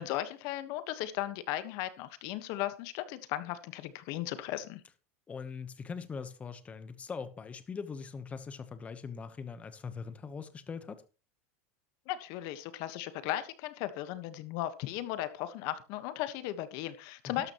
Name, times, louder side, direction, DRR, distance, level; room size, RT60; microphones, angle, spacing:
voice 1, 0.0-4.8 12.1-17.5, left 14 dB, 55° left, 1.4 m, -36 dB
voice 2, 5.3-11.0 17.2-17.5, left 5 dB, 15° left, 1.1 m, -41 dB
12.5 x 12.0 x 3.1 m
supercardioid pair, 145°, 8 cm